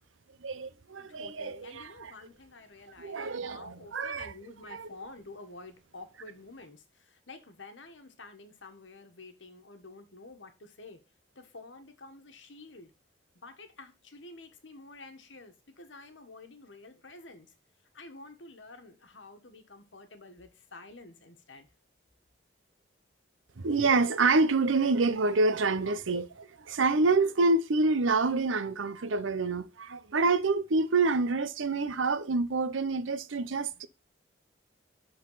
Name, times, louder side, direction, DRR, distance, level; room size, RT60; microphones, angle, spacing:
voice 1, 0.4-2.1 3.0-4.3 4.7-4.9 23.6-33.9, right 3 dB, 90° right, 0.7 m, -27 dB
voice 2, 1.1-11.0 11.3-12.9 13.3-17.5 17.9-21.7, left 3 dB, 75° left, 1.5 m, -49 dB
11.5 x 4.0 x 4.0 m
head